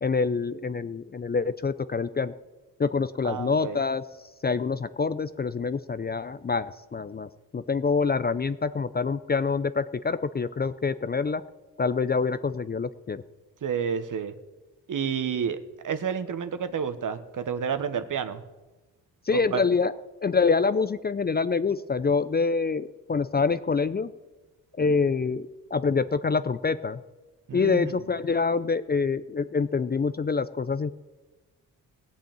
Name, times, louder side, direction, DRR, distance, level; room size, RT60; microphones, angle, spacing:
voice 1, 0.0-2.3 2.8-4.0 4.4-7.3 7.5-11.4 11.8-13.2 19.3-19.9 20.2-24.1 24.8-27.0 27.5-30.9, left 4 dB, 25° left, 14 dB, 0.6 m, -26 dB
voice 2, 3.2-3.8 13.6-14.3 14.9-18.4 19.3-19.6 27.5-27.9, right 7 dB, 50° right, 10 dB, 1.3 m, -30 dB
16.5 x 5.7 x 8.8 m, 1.2 s
supercardioid pair, 70°, 39 cm